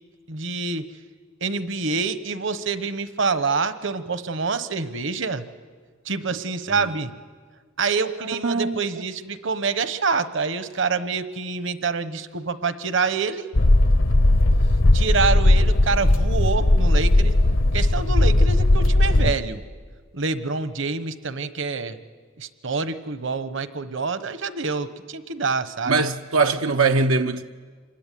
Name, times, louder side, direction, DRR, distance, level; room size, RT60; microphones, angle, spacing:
voice 1, 0.3-0.8 1.4-5.4 6.0-7.1 7.8-13.4 14.9-17.3 17.7-19.6 20.1-22.0 22.4-26.0, right 4 dB, 60° right, 1.1 m, -26 dB
voice 2, 8.4-8.8 25.9-27.4, right 4 dB, 90° right, 0.8 m, -21 dB
sound 1, 13.5-19.3, left 1 dB, 70° left, 1.0 m, -17 dB
26.5 x 22.0 x 9.2 m
head